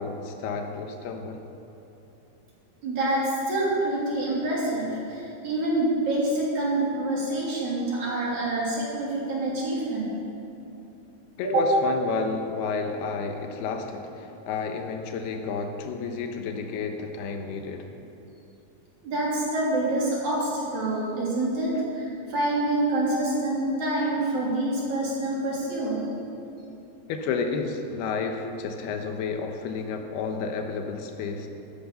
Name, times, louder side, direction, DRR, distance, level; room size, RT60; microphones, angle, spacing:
voice 1, 0.0-1.4 11.4-17.9 27.1-31.5, left 4 dB, 80° left, 5 dB, 3.0 m, -31 dB
voice 2, 2.8-10.1 11.4-11.6 19.0-26.0, right 2 dB, 45° right, -6 dB, 4.2 m, -26 dB
14.0 x 13.5 x 5.5 m, 3.0 s
omnidirectional pair, 4.6 m